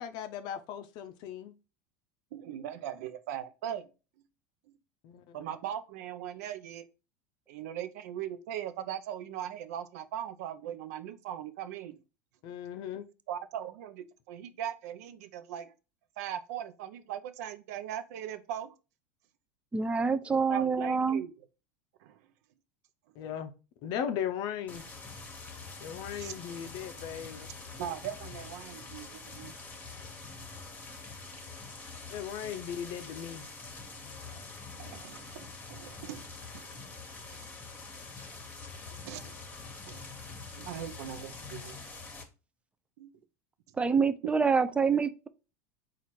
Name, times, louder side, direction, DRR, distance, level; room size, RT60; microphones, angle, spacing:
voice 1, 0.0-1.5 5.0-5.4 12.4-13.0 23.2-23.5 23.8-24.9 25.8-27.5 32.1-33.5, left 9 dB, 55° left, 0.5 m, -37 dB
voice 2, 2.3-3.8 5.3-6.8 7.5-12.0 13.3-15.7 16.2-18.7 20.5-21.3 22.0-22.2 26.2-26.3 27.8-29.5 34.7-36.3 36.5-36.8 37.3-37.5 39.0-39.4 39.9-40.1 40.6-41.9 43.0-43.1, right 10 dB, 75° right, 0.5 m, -39 dB
voice 3, 19.7-21.2 43.8-45.3, right 5 dB, 15° right, 0.4 m, -26 dB
sound 1, 24.7-42.2, left 4 dB, 20° left, 1.1 m, -45 dB
4.2 x 2.4 x 4.5 m
supercardioid pair, 105°, 9 cm